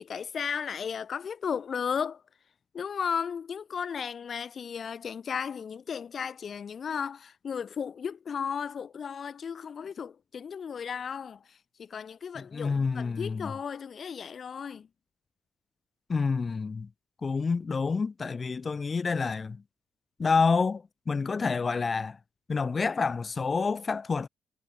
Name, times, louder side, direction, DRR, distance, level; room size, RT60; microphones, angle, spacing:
voice 1, 0.0-2.2 2.7-11.4 11.8-14.9, left 7 dB, 50° left, 0.3 m, -35 dB
voice 2, 12.3-13.5 16.1-16.9 17.2-19.6 20.2-22.2 22.5-24.3, left 4 dB, 35° left, 0.9 m, -28 dB
cardioid pair, 90°, 0 cm